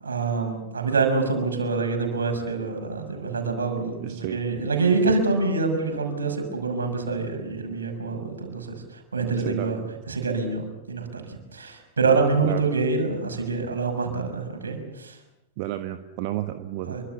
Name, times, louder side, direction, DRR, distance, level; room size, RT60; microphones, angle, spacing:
voice 1, 0.0-8.7 9.1-9.8 10.1-15.2 16.9-17.0, right 4 dB, 75° right, 5 dB, 6.3 m, -26 dB
voice 2, 4.0-4.4 9.4-9.9 12.4-12.7 15.6-17.0, right 14 dB, 50° right, 8 dB, 1.4 m, -32 dB
27.0 x 24.5 x 7.2 m, 0.93 s
figure-of-eight pair, 95°, 0 cm